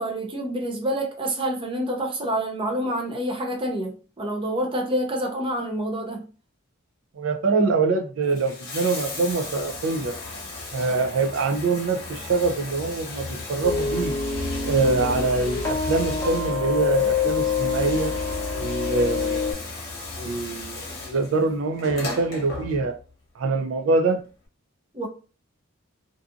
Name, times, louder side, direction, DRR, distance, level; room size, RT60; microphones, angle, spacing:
voice 1, 0.0-6.2 24.9-25.1, right 1 dB, 25° right, 0.5 m, -27 dB
voice 2, 7.1-10.1 10.7-14.2 14.6-18.1 18.5-19.7 20.2-22.9 23.4-24.2, right 3 dB, 70° right, 0.4 m, -24 dB
Bathtub (filling or washing), 8.2-23.1 24.2-24.3, left 3 dB, 50° left, 0.8 m, -36 dB
sound 1, 13.6-19.5, left 5 dB, 15° left, 0.8 m, -26 dB
2.6 x 2.4 x 2.4 m
head